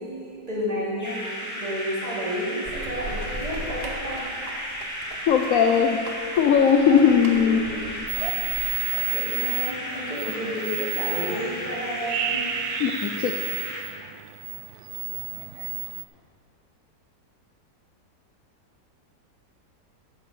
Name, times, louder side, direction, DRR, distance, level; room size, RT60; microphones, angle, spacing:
voice 1, 0.0-4.3 7.3-7.9 8.8-12.5, equal, 20° right, -6 dB, 2.5 m, -32 dB
sound 1, 1.0-13.8, equal, 10° left, 1.8 m, -34 dB
sound 2, 2.6-8.7, right 2 dB, 40° right, 1.1 m, -39 dB
voice 2, 5.3-6.0 6.4-7.6 12.8-13.3, left 7 dB, 65° left, 5 dB, 0.9 m, -19 dB
Squirrel Call, 8.1-16.0, right 10 dB, 70° right, 1.0 m, -31 dB
10.0 x 7.3 x 6.8 m, 2.3 s
omnidirectional pair, 1.9 m